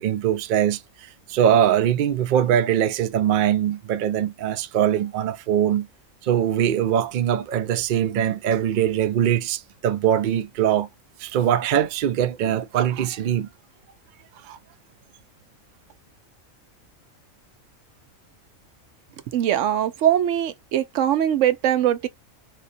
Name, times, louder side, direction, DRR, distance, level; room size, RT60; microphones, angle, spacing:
voice 1, 0.0-5.9 6.2-10.9 11.2-13.5 14.4-14.6, right 10 dB, 90° right, 0.4 m, -22 dB
voice 2, 19.3-22.1, right 11 dB, 70° right, 0.9 m, -21 dB
3.6 x 2.9 x 2.6 m
omnidirectional pair, 1.4 m